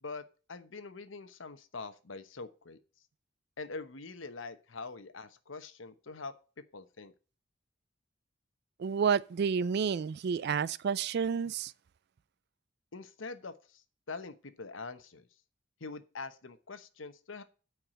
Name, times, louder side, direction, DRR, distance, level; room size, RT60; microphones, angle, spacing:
voice 1, 0.0-2.8 3.6-6.3 6.7-7.1 12.9-15.3 15.8-17.4, left 4 dB, 80° left, 1.0 m, -44 dB
voice 2, 8.8-11.7, right 6 dB, 55° right, 0.3 m, -30 dB
9.0 x 4.8 x 7.4 m
head